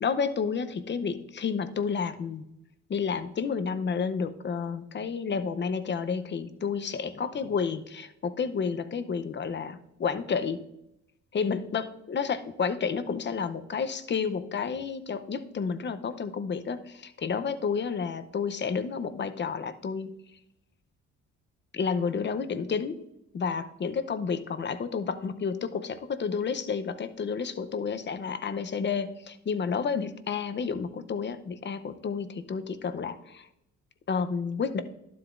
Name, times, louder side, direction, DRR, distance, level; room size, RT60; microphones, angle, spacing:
voice 1, 0.0-2.4 2.9-10.6 11.3-20.1 21.7-23.0 23.3-33.5 34.1-34.8, left 6 dB, 35° left, 11 dB, 0.7 m, -30 dB
12.0 x 7.8 x 2.5 m, 0.83 s
cardioid pair, 90°, 30 cm